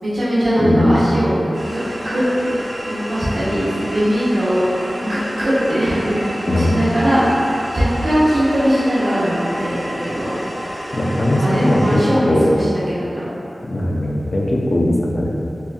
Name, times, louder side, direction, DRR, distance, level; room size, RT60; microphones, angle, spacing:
voice 1, 0.0-1.3 1.7-2.2 2.9-4.6 5.0-7.3 7.7-10.3 11.3-13.3, equal, 90° right, -12 dB, 0.9 m, -20 dB
voice 2, 0.6-1.0 6.5-6.7 10.9-12.5 13.7-15.3, left 1 dB, 55° left, -2 dB, 0.5 m, -18 dB
sound 1, 1.5-12.1, equal, 60° right, 0.9 m, -30 dB
4.3 x 2.6 x 2.4 m, 2.8 s
wide cardioid pair, 60°, 0 cm